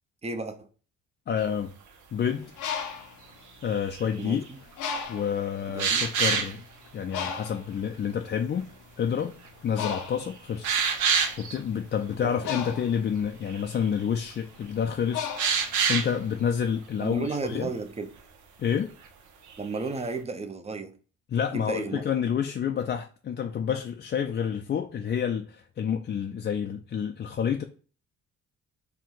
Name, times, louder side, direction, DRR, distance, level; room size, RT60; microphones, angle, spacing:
voice 1, 0.2-0.7 4.2-4.6 5.7-6.1 12.2-12.6 17.0-18.2 19.6-21.0 21.5-22.0, right 3 dB, 20° right, 0.6 m, -34 dB
voice 2, 1.3-1.8 2.1-2.5 3.6-4.4 5.1-6.6 6.9-8.7 9.0-9.4 9.6-10.7 11.1-17.7 18.6-18.9 21.3-27.6, left 8 dB, 35° left, 0.4 m, -29 dB
sound 1, 1.4-1.5 3.7-4.3 5.8-6.5 9.5-9.6 10.0-10.1 10.6-11.6 13.2-13.3 13.5-13.9 15.4-16.1 19.5-19.8, right 6 dB, 75° right, 0.8 m, -26 dB
Bird, 2.4-4.2 4.8-5.5 6.1-6.3 6.5-16.3, left 7 dB, 80° left, 0.7 m, -36 dB
4.5 x 2.2 x 3.8 m
cardioid pair, 90°, 30 cm